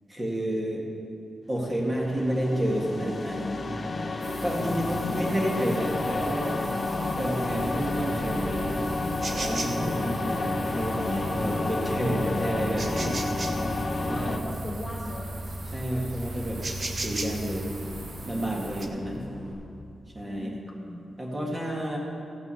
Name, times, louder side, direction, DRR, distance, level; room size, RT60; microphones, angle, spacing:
voice 1, 0.1-0.8 1.5-3.6 4.4-6.6 7.2-8.8 9.3-13.1 14.1-14.4 15.7-16.6 17.0-17.8 18.2-19.2 20.2-20.6 21.2-22.0, equal, 20° right, -2 dB, 1.8 m, -30 dB
sound 1, 1.7-14.4, left 2 dB, 35° left, 0.8 m, -30 dB
sound 2, 4.2-18.9, right 3 dB, 40° right, 0.9 m, -40 dB
Bus, 5.5-19.5, right 1 dB, 65° right, 3.1 m, -39 dB
voice 2, 10.0-10.4 14.0-15.3 20.2-21.1 21.4-21.9, left 1 dB, 20° left, -3 dB, 1.3 m, -39 dB
15.5 x 6.0 x 5.6 m, 2.4 s
wide cardioid pair, 145°, 0 cm